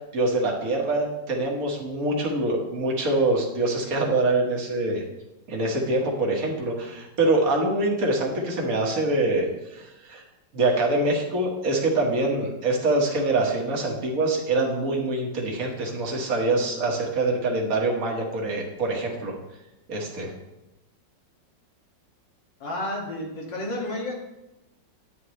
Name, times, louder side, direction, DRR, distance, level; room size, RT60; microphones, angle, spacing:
voice 1, 0.1-5.0 5.5-10.2 10.5-19.4 19.9-20.3, right 2 dB, 50° right, -1 dB, 2.0 m, -25 dB
voice 2, 22.6-24.1, left 1 dB, 80° left, -2 dB, 2.8 m, -31 dB
10.0 x 9.6 x 3.2 m, 0.95 s
omnidirectional pair, 2.0 m